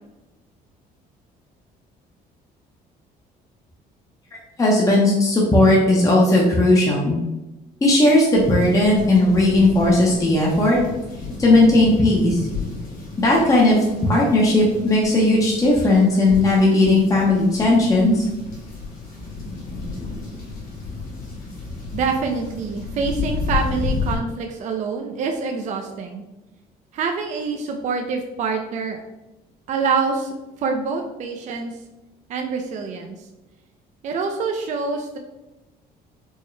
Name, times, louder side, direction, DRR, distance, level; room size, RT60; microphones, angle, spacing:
voice 1, 4.6-7.2 7.8-10.8 11.4-12.5 13.2-18.3, left 2 dB, 20° left, -3 dB, 0.7 m, -16 dB
sound 1, 8.3-24.2, left 4 dB, 60° left, 1.4 m, -32 dB
voice 2, 21.9-26.2 26.9-29.0 29.7-31.8 32.3-33.2 34.0-35.2, right 4 dB, 45° right, 3 dB, 0.4 m, -26 dB
4.5 x 2.1 x 3.1 m, 1.0 s
cardioid pair, 110°, 17 cm